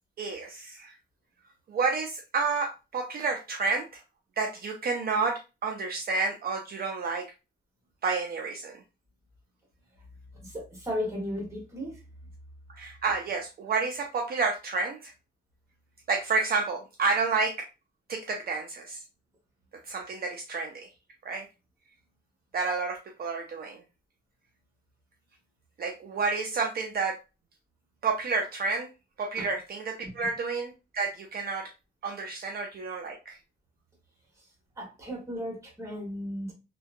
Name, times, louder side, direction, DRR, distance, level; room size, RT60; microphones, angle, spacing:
voice 1, 0.2-0.9 1.7-3.9 4.4-7.3 8.0-8.8 12.8-15.1 16.1-17.5 18.1-19.0 19.9-20.9 21.2-21.4 22.5-23.8 25.8-27.2 28.0-28.9 29.2-31.7 32.0-33.4, right 4 dB, 55° right, 0.4 m, -30 dB
voice 2, 10.4-11.9 29.4-29.5 34.8-36.5, equal, 15° right, 1.2 m, -35 dB
2.7 x 2.2 x 2.4 m
wide cardioid pair, 145°, 19 cm